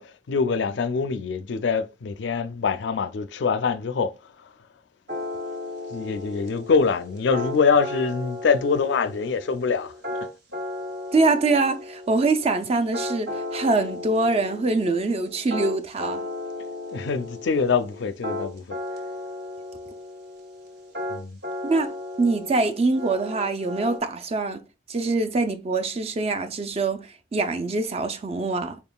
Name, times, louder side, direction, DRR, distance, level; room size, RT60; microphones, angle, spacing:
voice 1, 0.0-4.5 5.9-10.3 16.9-18.8 21.1-21.4, left 5 dB, 70° left, 0.4 m, -24 dB
sound 1, 5.1-24.0, left 2 dB, 55° right, 1.1 m, -35 dB
voice 2, 11.1-16.2 21.6-21.9 22.2-24.6 24.9-28.8, right 3 dB, 30° right, 0.4 m, -24 dB
4.5 x 3.6 x 2.3 m
head